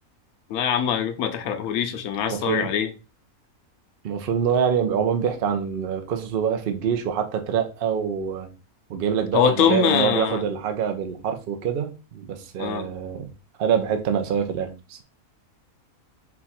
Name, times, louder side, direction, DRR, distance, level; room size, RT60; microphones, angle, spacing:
voice 1, 0.5-2.9 9.3-10.4 12.6-12.9, left 8 dB, 85° left, 1.1 m, -23 dB
voice 2, 2.3-2.7 4.0-8.5 8.9-13.3 13.6-15.0, right 7 dB, 55° right, 0.7 m, -25 dB
4.4 x 2.3 x 4.1 m
omnidirectional pair, 1.5 m